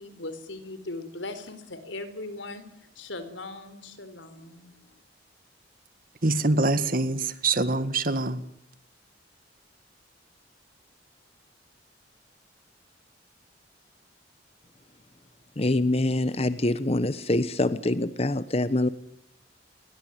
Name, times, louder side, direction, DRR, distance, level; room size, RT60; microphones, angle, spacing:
voice 1, 0.0-5.0, left 2 dB, 90° left, 4.2 m, -39 dB
voice 2, 6.2-8.4, right 2 dB, 50° right, 1.9 m, -24 dB
voice 3, 15.6-18.9, left 1 dB, 35° left, 1.1 m, -25 dB
29.0 x 22.5 x 9.2 m
head